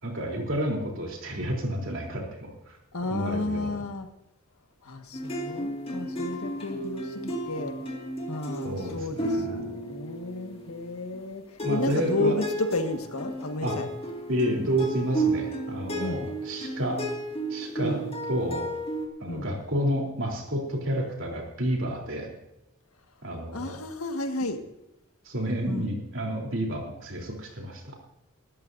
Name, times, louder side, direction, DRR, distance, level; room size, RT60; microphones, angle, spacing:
voice 1, 0.0-2.8 3.1-3.7 8.6-9.7 11.6-12.4 13.6-13.8 14.3-17.0 17.5-18.7 19.2-22.3 23.2-23.8 25.3-28.0, right 1 dB, 60° right, 0 dB, 3.6 m, -30 dB
voice 2, 2.9-4.1 4.8-7.7 8.3-13.9 16.0-16.2 17.8-18.0 19.3-19.5 23.5-24.6 25.6-25.9, left 2 dB, 85° left, 5 dB, 1.8 m, -32 dB
sound 1, 5.1-11.2 11.6-19.1, right 1 dB, 25° left, 2.2 m, -33 dB
20.0 x 14.0 x 2.7 m, 0.88 s
head